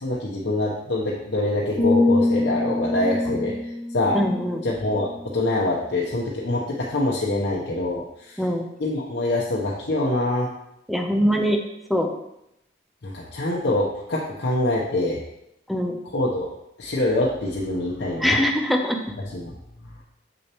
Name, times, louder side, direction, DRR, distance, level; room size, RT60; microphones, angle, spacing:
voice 1, 0.0-3.6 3.9-4.2 4.6-8.4 8.8-10.5 13.0-15.2 16.0-16.5 16.8-18.4 19.2-19.5, left 1 dB, 90° left, -4 dB, 0.9 m, -25 dB
sound 1, 1.8-5.8 6.1-6.4, left 2 dB, 30° left, 2.2 m, -25 dB
voice 2, 4.1-4.6 8.4-8.6 10.9-11.6 11.9-12.1 15.7-16.0 18.2-19.0, equal, ahead, 3 dB, 0.6 m, -22 dB
7.1 x 6.5 x 3.0 m, 0.82 s
head